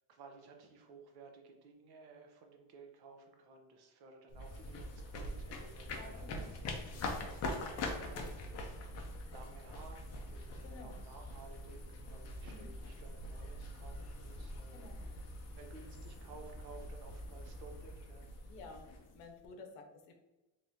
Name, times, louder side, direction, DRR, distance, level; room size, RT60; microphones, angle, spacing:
voice 1, 0.1-6.5 6.9-7.4 7.7-8.4 9.3-15.1 15.5-18.3 19.4-19.7, right 4 dB, 50° right, 3 dB, 0.7 m, -56 dB
sound 1, 4.3-19.5, left 1 dB, 35° left, 0.4 m, -44 dB
voice 2, 6.0-6.5 10.6-11.0 12.5-12.7 14.7-15.0 18.5-18.8 19.1-20.1, left 3 dB, 65° left, 4 dB, 0.8 m, -52 dB
3.5 x 3.2 x 2.7 m, 1.0 s
cardioid pair, 175°, 49 cm